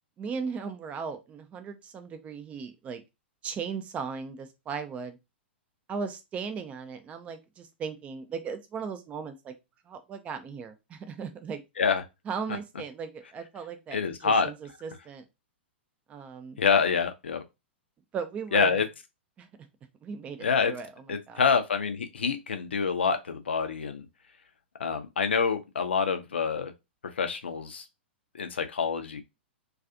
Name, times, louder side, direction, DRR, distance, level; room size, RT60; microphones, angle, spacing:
voice 1, 0.2-3.0 3.4-5.2 5.9-9.5 9.9-11.6 12.3-15.3 16.1-16.6 18.1-18.8 19.4-19.5 20.0-21.4, right 5 dB, 20° right, 0.4 m, -37 dB
voice 2, 13.9-14.5 16.6-17.4 18.5-18.9 20.4-20.7 21.1-24.1 24.8-26.7 27.2-27.8 28.3-29.2, left 5 dB, 70° left, 0.5 m, -26 dB
2.3 x 2.3 x 2.6 m
figure-of-eight pair, 105°, 6 cm